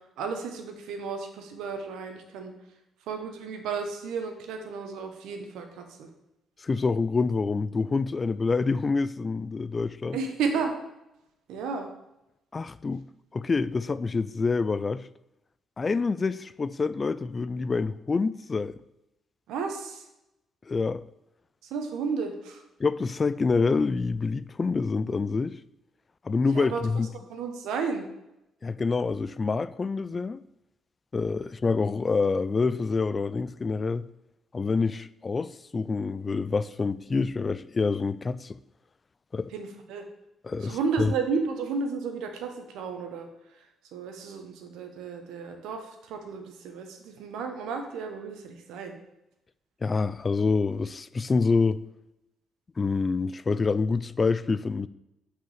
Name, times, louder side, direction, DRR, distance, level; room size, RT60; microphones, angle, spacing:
voice 1, 0.2-2.5 3.1-6.1 10.1-10.7 11.5-11.9 19.5-20.1 21.7-22.6 26.5-27.0 27.3-28.1 39.5-40.0 40.6-43.7 43.9-49.0, right 5 dB, 90° right, 1.2 m, -33 dB
voice 2, 6.6-10.2 12.5-13.0 13.3-15.1 15.8-18.7 20.7-21.0 22.8-25.5 26.2-27.1 28.6-30.4 31.1-34.1 34.5-38.6 39.3-39.5 40.4-41.1 49.8-51.8 52.8-54.9, left 4 dB, 30° left, 0.3 m, -27 dB
6.2 x 4.8 x 6.6 m
cardioid pair, 90°, 0 cm